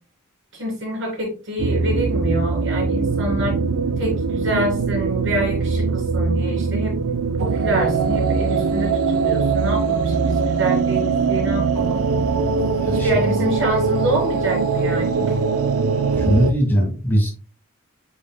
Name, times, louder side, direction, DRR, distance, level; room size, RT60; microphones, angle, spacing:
voice 1, 0.5-3.6 4.0-6.9 7.4-12.0 12.9-15.3, right 1 dB, 60° right, -1 dB, 3.3 m, -26 dB
sound 1, 1.6-16.5, right 4 dB, 90° right, 0.5 m, -21 dB
voice 2, 16.1-17.3, equal, 10° left, -1 dB, 2.0 m, -19 dB
8.5 x 5.1 x 2.2 m, 0.35 s
head